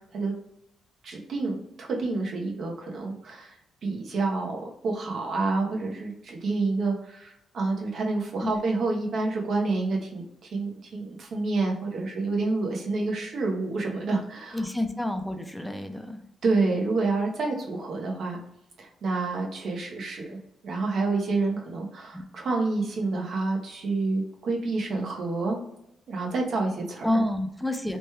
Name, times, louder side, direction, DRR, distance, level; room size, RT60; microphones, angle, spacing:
voice 1, 1.0-3.6 3.8-14.6 16.4-18.4 18.8-20.4 20.6-25.6 26.1-27.2, right 3 dB, 60° right, -1 dB, 0.8 m, -28 dB
voice 2, 14.5-16.2 22.1-22.2 27.0-28.0, left 1 dB, ahead, 6 dB, 0.4 m, -28 dB
3.0 x 2.2 x 3.0 m, 0.79 s
cardioid pair, 115°, 0 cm